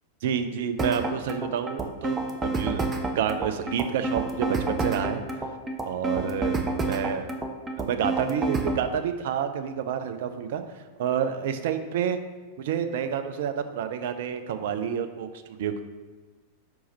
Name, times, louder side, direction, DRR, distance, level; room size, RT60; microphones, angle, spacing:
voice 1, 0.2-5.2 5.8-6.6 6.9-7.3 7.8-10.6 11.0-12.2 12.6-15.8, right 8 dB, 55° right, 8 dB, 0.5 m, -29 dB
sound 1, 0.8-8.8, right 3 dB, 20° right, 0.6 m, -28 dB
5.1 x 4.7 x 4.0 m, 1.4 s
figure-of-eight pair, 90°, 0 cm